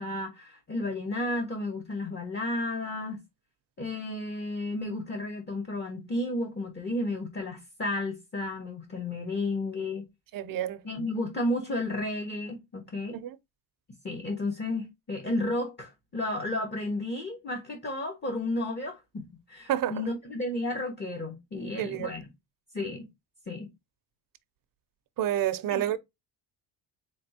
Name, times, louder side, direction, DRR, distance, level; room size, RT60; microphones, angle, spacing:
voice 1, 0.0-3.2 3.8-10.1 10.8-13.2 14.0-22.3 22.7-23.1 23.5-23.7 25.7-26.0, left 2 dB, 25° left, 0.8 m, -32 dB
voice 2, 10.3-10.8 13.1-13.4 19.7-19.9 21.8-22.1 25.2-26.0, right 12 dB, 50° right, 0.5 m, -29 dB
3.9 x 3.4 x 2.7 m
cardioid pair, 140°, 43 cm